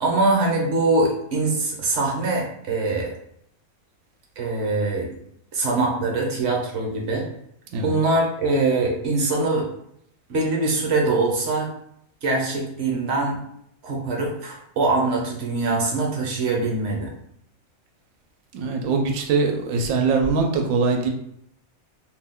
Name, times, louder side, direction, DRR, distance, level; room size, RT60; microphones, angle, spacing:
voice 1, 0.0-3.1 4.4-5.1 5.5-7.3 7.8-9.6 10.3-11.7 12.2-13.4 13.8-17.1, right 2 dB, 60° right, -1 dB, 0.9 m, -23 dB
voice 2, 18.5-21.1, right 4 dB, 90° right, 2 dB, 1.0 m, -22 dB
2.6 x 2.2 x 3.5 m, 0.72 s
omnidirectional pair, 1.4 m